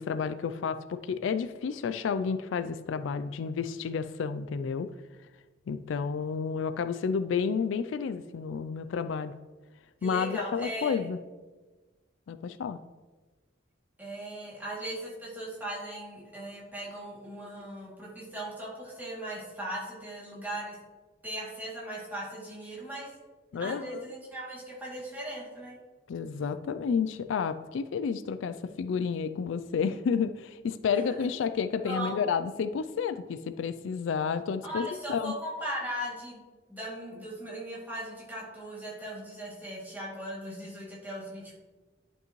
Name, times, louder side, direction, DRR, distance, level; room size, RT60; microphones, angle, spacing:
voice 1, 0.0-4.9 5.7-9.3 10.0-11.2 12.3-12.8 23.5-24.1 26.1-35.3, left 6 dB, 75° left, 11 dB, 0.3 m, -31 dB
voice 2, 10.0-11.1 14.0-20.8 21.2-23.1 23.6-25.8 30.9-31.2 31.9-32.2 34.6-36.4 36.7-41.5, right 1 dB, 10° right, -6 dB, 2.4 m, -38 dB
11.0 x 5.3 x 3.1 m, 1.3 s
head